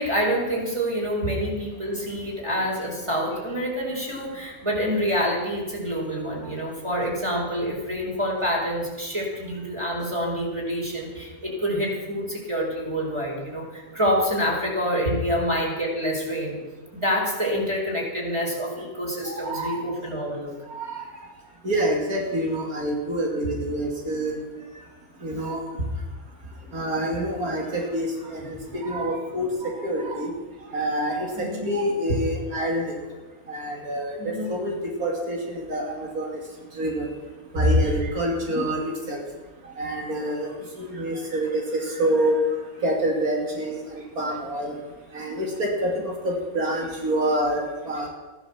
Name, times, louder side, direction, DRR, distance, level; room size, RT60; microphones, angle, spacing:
voice 1, 0.0-16.6 16.9-20.5 31.3-31.7 34.2-34.5, equal, 20° right, -3 dB, 4.8 m, -27 dB
voice 2, 19.3-19.8 20.7-21.1 21.6-24.3 25.2-25.6 26.7-30.3 30.7-32.9 33.5-34.7 35.0-36.4 36.8-37.1 37.5-39.2 39.8-40.5 40.8-42.4 42.8-44.7 45.1-48.1, right 1 dB, 75° right, 0 dB, 3.0 m, -26 dB
14.5 x 12.0 x 7.3 m, 1.2 s
omnidirectional pair, 1.5 m